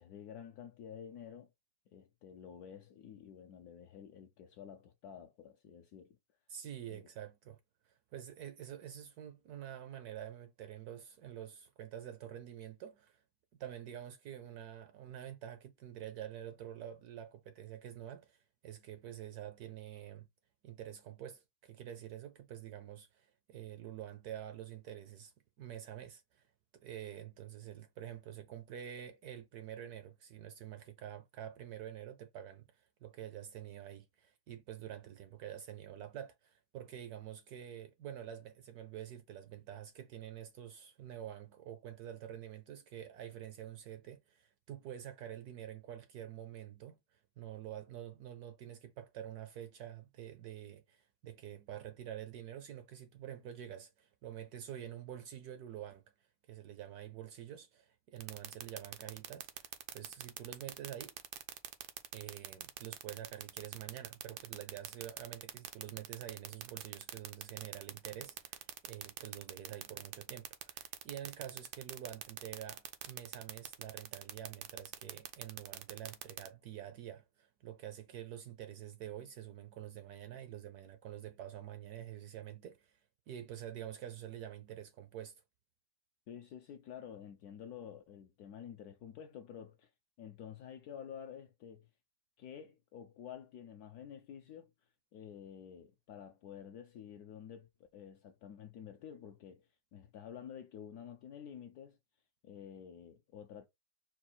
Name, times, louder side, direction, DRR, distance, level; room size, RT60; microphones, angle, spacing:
voice 1, 0.0-1.5 1.9-6.2 6.9-7.0 86.3-89.9 90.2-91.9 92.4-94.7 95.1-102.0 102.4-103.7, left 8 dB, 70° left, 0.9 m, -50 dB
voice 2, 6.5-7.6 7.8-13.2 13.6-20.3 20.6-26.5 26.7-56.0 56.5-61.2 62.1-83.0 83.3-85.3, right 11 dB, 70° right, 0.9 m, -47 dB
sound 1, 58.2-76.5, right 13 dB, 90° right, 1.4 m, -43 dB
4.4 x 2.3 x 4.2 m
omnidirectional pair, 2.0 m